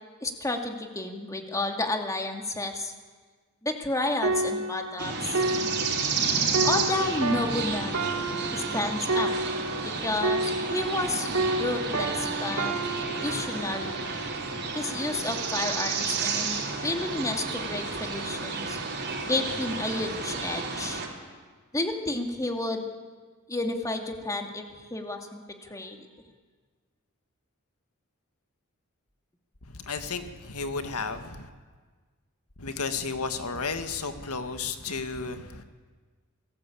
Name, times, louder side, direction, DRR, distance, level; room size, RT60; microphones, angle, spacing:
voice 1, 0.2-2.9 3.6-5.4 6.6-8.2 8.5-9.3 9.8-11.3 11.6-12.7 13.1-14.0 14.7-18.8 19.3-21.0 21.7-22.9 23.5-26.0, left 2 dB, 15° left, 4 dB, 2.4 m, -31 dB
sound 1, 4.2-11.1 11.3-14.9 15.6-15.8, right 2 dB, 70° right, 2.8 m, -31 dB
sound 2, 5.0-21.1, right 4 dB, 50° right, 4.2 m, -31 dB
voice 2, 29.7-31.5 32.6-35.6, left 4 dB, 90° left, 8 dB, 1.9 m, -33 dB
28.0 x 19.0 x 8.6 m, 1.5 s
head